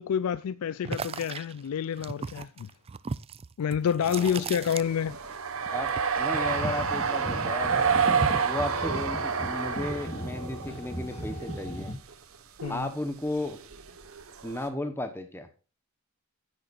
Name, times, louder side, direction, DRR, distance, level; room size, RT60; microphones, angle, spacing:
voice 1, 0.0-2.7 3.6-5.2 12.6-12.9, left 8 dB, 80° left, 0.3 m, -28 dB
sound 1, 0.8-5.4 5.6-7.3 7.6-8.6, right 5 dB, 25° right, 0.3 m, -37 dB
voice 2, 4.1-4.8 5.7-7.9 8.4-11.9 12.7-13.6 14.4-15.5, left 1 dB, 10° left, 0.9 m, -34 dB
sound 2, 4.2-10.9 11.1-11.8 12.1-12.2 12.6-12.8 13.4-14.7, right 6 dB, 70° right, 1.2 m, -29 dB
sound 3, 6.4-11.9, equal, 30° left, 2.0 m, -37 dB
10.0 x 9.5 x 2.5 m
head